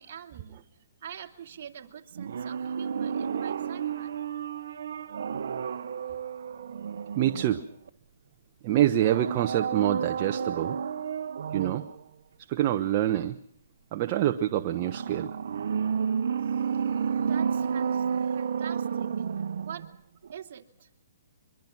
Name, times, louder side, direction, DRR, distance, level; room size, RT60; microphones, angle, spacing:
voice 1, 0.0-4.4 16.4-19.1 19.6-19.9 20.3-20.9, right 8 dB, 50° right, 2 dB, 2.9 m, -45 dB
sound 1, 2.2-7.9 9.0-12.0 14.8-20.0 20.2-20.3, right 7 dB, 65° right, 1.0 m, -31 dB
voice 2, 7.2-7.6 8.6-10.8 11.5-11.8 12.5-13.4 13.9-15.4, right 12 dB, 35° right, 6 dB, 1.0 m, -26 dB
24.0 x 23.0 x 6.1 m, 0.69 s
hypercardioid pair, 160°, 0 cm